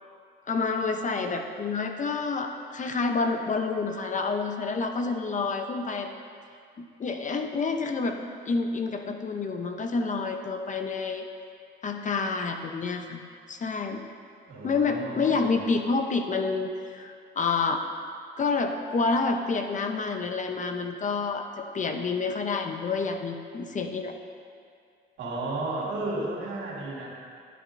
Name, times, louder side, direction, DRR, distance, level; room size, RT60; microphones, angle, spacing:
voice 1, 0.5-6.1 6.8-8.2 8.5-11.2 11.8-13.2 13.5-14.0 14.6-17.8 18.4-24.1, left 4 dB, 40° left, 5 dB, 0.7 m, -28 dB
voice 2, 14.5-15.6 25.2-27.1, right 2 dB, 80° right, -4 dB, 2.3 m, -33 dB
10.5 x 10.0 x 2.6 m, 2.2 s
cardioid pair, 90°, 20 cm